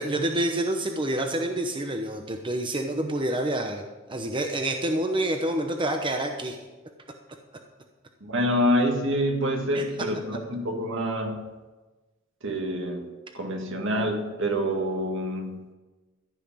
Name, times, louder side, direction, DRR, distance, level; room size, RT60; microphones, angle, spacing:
voice 1, 0.0-3.8 4.1-6.6 9.7-9.8, right 1 dB, 25° right, 3 dB, 0.9 m, -27 dB
voice 2, 8.2-11.5 12.4-13.1 13.3-15.6, equal, 65° right, 3 dB, 1.9 m, -27 dB
14.5 x 5.8 x 8.8 m, 1.2 s
head